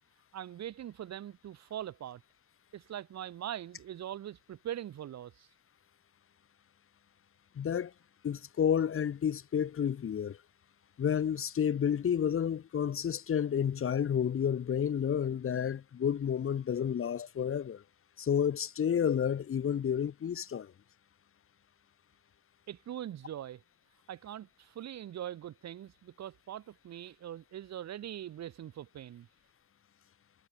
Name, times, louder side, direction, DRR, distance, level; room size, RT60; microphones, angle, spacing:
voice 1, 0.3-2.2 2.7-5.5 22.7-23.6 24.1-29.3, right 11 dB, 60° right, 1.3 m, -42 dB
voice 2, 7.5-7.9 8.2-10.4 11.0-17.8 18.2-20.7, left 8 dB, 45° left, 1.2 m, -30 dB
cardioid pair, 90°, 30 cm